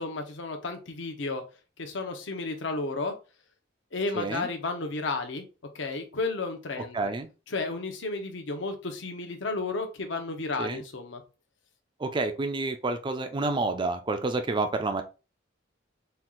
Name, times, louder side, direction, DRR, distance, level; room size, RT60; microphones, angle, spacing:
voice 1, 0.0-1.4 1.8-3.2 3.9-5.4 5.7-7.0 7.5-11.2, left 3 dB, 70° left, 5 dB, 0.8 m, -32 dB
voice 2, 4.1-4.5 6.9-7.3 10.6-10.8 12.0-15.0, right 3 dB, 25° right, 7 dB, 0.4 m, -29 dB
4.4 x 2.4 x 3.7 m, 0.32 s
head